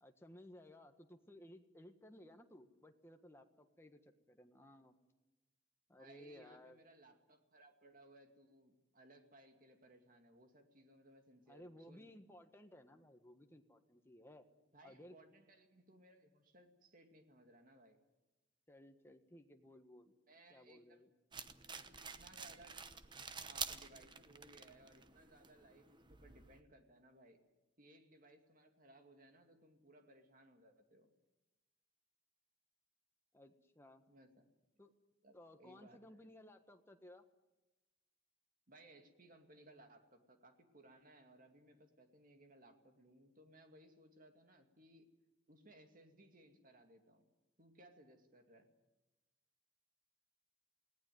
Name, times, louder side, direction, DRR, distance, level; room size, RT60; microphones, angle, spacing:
voice 1, 0.0-4.9 5.9-6.8 11.5-14.4 14.8-15.1 18.7-20.1 20.5-21.1 33.3-34.0 34.8-34.9 35.3-37.2, left 1 dB, 15° left, 5 dB, 1.5 m, -59 dB
voice 2, 5.9-12.1 14.7-18.0 20.3-21.1 21.7-22.8 23.4-27.4 27.8-31.1 34.1-34.3 35.2-36.2 38.7-45.1 45.5-47.3 47.6-48.7, right 1 dB, 45° right, 5 dB, 2.4 m, -63 dB
sound 1, 21.3-26.6, right 6 dB, 25° right, 0.9 m, -49 dB
20.0 x 17.5 x 9.3 m, 1.0 s
head